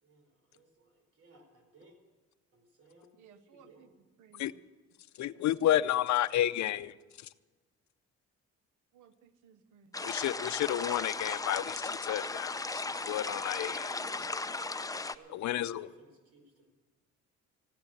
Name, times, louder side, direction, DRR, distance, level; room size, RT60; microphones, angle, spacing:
voice 1, 0.0-2.0 2.5-3.9 13.4-14.9 15.1-16.7, right 2 dB, 50° right, 4 dB, 4.5 m, -58 dB
voice 2, 3.2-3.9 4.2-4.6 8.9-10.1, right 7 dB, 85° right, 12 dB, 1.0 m, -60 dB
voice 3, 5.2-6.9 10.0-13.8 15.3-15.9, left 12 dB, 65° left, 13 dB, 0.6 m, -31 dB
sound 1, 9.9-15.1, left 3 dB, 10° left, 0.6 m, -36 dB
15.5 x 10.0 x 7.8 m, 1.3 s
cardioid pair, 90°, 30 cm